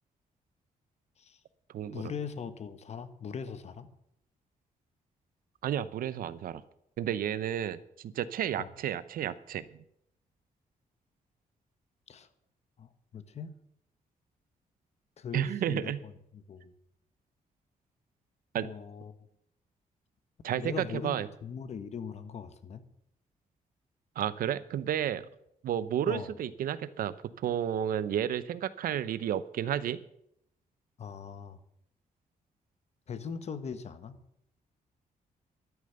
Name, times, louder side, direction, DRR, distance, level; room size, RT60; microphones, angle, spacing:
voice 1, 1.9-3.9 8.6-8.7 12.1-12.3 12.8-13.6 15.2-16.7 18.6-19.1 20.5-22.8 26.1-26.3 31.0-31.6 33.1-34.2, left 6 dB, 50° left, 11 dB, 1.2 m, -40 dB
voice 2, 5.6-6.6 7.0-7.8 8.1-9.6 15.3-16.0 18.5-18.7 20.4-21.3 24.2-25.2 25.6-30.0, right 10 dB, 85° right, 16 dB, 0.7 m, -31 dB
12.5 x 10.5 x 6.7 m, 0.77 s
cardioid pair, 140°, 14 cm